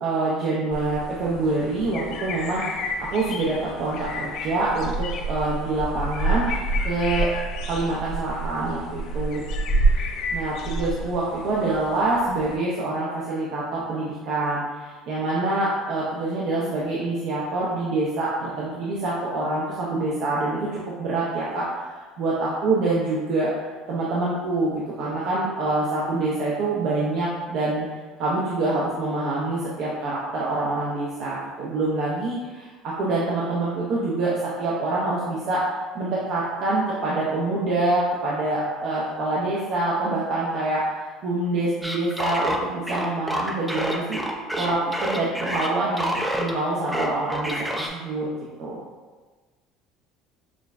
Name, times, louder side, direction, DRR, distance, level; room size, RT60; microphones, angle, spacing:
voice 1, 0.0-7.3 7.7-9.4 10.3-20.7 21.0-21.9 22.2-23.5 23.9-27.8 28.2-35.6 35.9-44.2 44.6-48.3 48.6-48.8, right 2 dB, 65° right, -6 dB, 0.7 m, -26 dB
sound 1, 0.7-12.6, right 2 dB, 65° left, 0.5 m, -28 dB
sound 2, 41.8-46.6 46.9-47.9, equal, 5° right, 0.4 m, -28 dB
6.0 x 2.3 x 2.5 m, 1.3 s
supercardioid pair, 110°, 0 cm